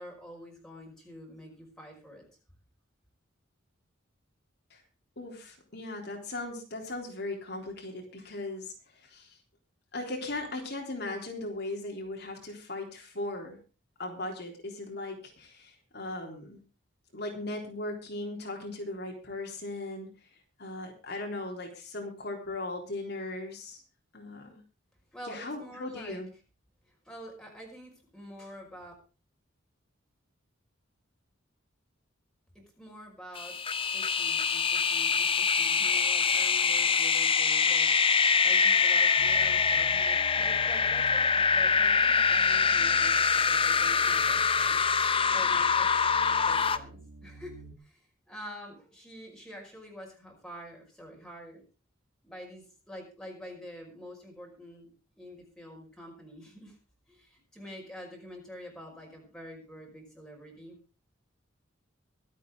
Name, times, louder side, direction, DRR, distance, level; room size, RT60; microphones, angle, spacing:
voice 1, 0.0-2.3 25.1-26.2 26.9-28.9 32.5-33.6 33.9-44.8 45.3-46.1 46.5-48.0 48.3-51.6 52.2-54.9 55.2-56.8 57.1-60.8, equal, 5° left, 0 dB, 5.4 m, -47 dB
voice 2, 5.2-9.4 9.9-13.6 14.0-16.6 17.1-20.1 20.6-23.8 24.1-24.6 25.3-26.3, left 2 dB, 55° left, 1 dB, 3.7 m, -38 dB
sound 1, 33.4-46.8, left 5 dB, 25° left, 0.8 m, -24 dB
sound 2, 39.2-47.8, right 4 dB, 75° right, 2.0 m, -48 dB
24.0 x 8.4 x 3.8 m, 0.34 s
head